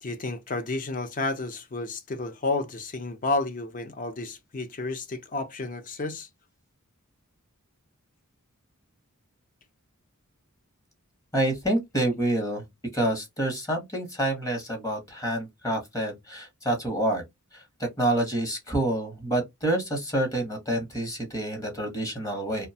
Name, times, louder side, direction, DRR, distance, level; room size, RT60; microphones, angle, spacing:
voice 1, 0.0-6.3, left 3 dB, 35° left, 0.5 m, -31 dB
voice 2, 11.3-12.6 12.9-17.2 17.5-22.7, right 1 dB, 15° left, 0.9 m, -28 dB
2.6 x 2.2 x 2.6 m
head